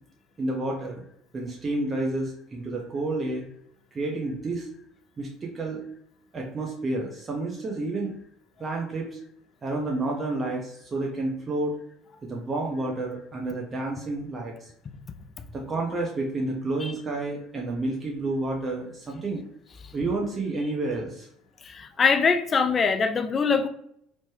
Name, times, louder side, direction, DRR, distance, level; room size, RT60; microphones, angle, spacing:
voice 1, 0.4-1.0 1.3-3.5 3.9-4.7 5.2-5.8 6.3-8.1 8.6-9.2 9.6-11.8 12.2-14.7 15.5-19.4 19.9-21.3, right 2 dB, 30° right, -1 dB, 0.6 m, -30 dB
voice 2, 21.6-23.7, left 5 dB, 35° left, 9 dB, 0.4 m, -23 dB
3.1 x 2.1 x 3.1 m, 0.71 s
hypercardioid pair, 70°, 0 cm